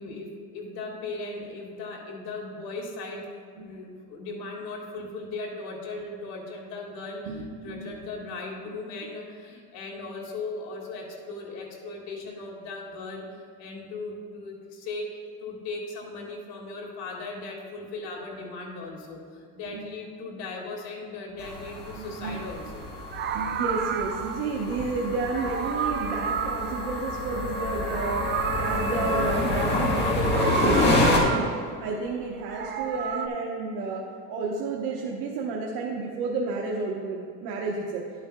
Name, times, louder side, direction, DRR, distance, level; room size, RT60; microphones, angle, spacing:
voice 1, 0.0-22.9, left 3 dB, 65° left, 0 dB, 1.9 m, -38 dB
voice 2, 7.3-7.9 19.7-19.8 22.0-22.4 23.3-28.2 28.5-31.5 31.8-34.0 34.3-38.0, right 3 dB, 80° right, -1 dB, 1.0 m, -31 dB
sound 1, 21.4-31.2, left 2 dB, 25° left, 1.5 m, -28 dB
Meow, 22.2-22.4 23.0-24.5 25.2-27.5 27.7-29.7 30.2-31.8 32.3-33.3, right 7 dB, 30° right, 0.4 m, -32 dB
12.0 x 8.7 x 2.2 m, 2.2 s
cardioid pair, 145°, 40 cm